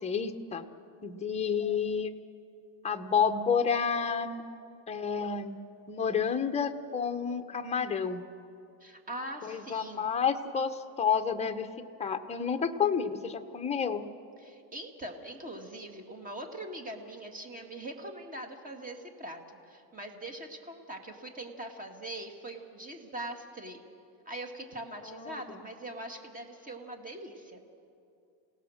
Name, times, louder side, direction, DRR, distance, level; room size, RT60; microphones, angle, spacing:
voice 1, 0.0-0.7 1.0-2.2 2.8-4.4 4.9-5.6 5.9-8.2 9.4-11.7 12.0-14.0 25.0-25.6, left 6 dB, 15° left, 7 dB, 0.8 m, -30 dB
voice 2, 8.8-10.1 14.4-19.4 19.7-23.8 24.3-27.6, right 1 dB, 20° right, 4 dB, 2.0 m, -42 dB
28.5 x 18.0 x 6.5 m, 2.6 s
cardioid pair, 155°, 45 cm